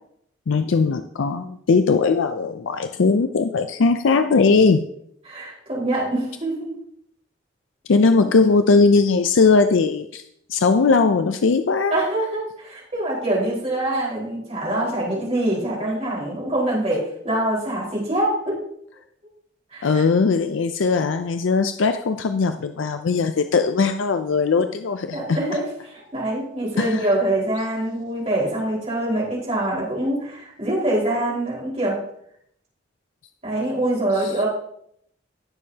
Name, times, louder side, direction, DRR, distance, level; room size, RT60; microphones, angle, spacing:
voice 1, 0.5-4.8 7.9-10.2 10.5-11.9 19.8-25.4 26.8-27.1 34.2-34.3, left 4 dB, 90° left, 8 dB, 0.5 m, -19 dB
voice 2, 5.2-6.7 8.2-8.3 11.9-18.6 19.7-20.0 25.1-32.0 33.4-34.5, right 1 dB, 35° right, -5 dB, 4.6 m, -24 dB
17.5 x 6.5 x 2.8 m, 0.70 s
head